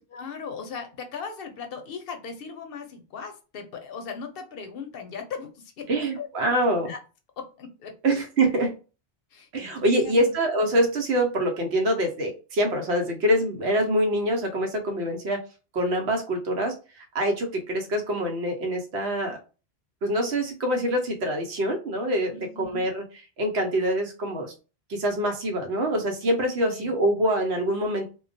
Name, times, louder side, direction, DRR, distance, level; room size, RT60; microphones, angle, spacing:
voice 1, 0.1-6.3 6.8-7.0 7.4-7.9 9.3-10.3 22.3-22.9 26.7-26.9, left 5 dB, 65° left, 5 dB, 0.7 m, -38 dB
voice 2, 5.9-6.9 8.0-8.7 9.5-15.4 15.7-19.4 20.0-22.3 22.6-23.0 23.4-24.5 24.9-28.1, right 1 dB, 85° right, 3 dB, 1.0 m, -25 dB
2.2 x 2.2 x 2.5 m, 0.34 s
omnidirectional pair, 1.1 m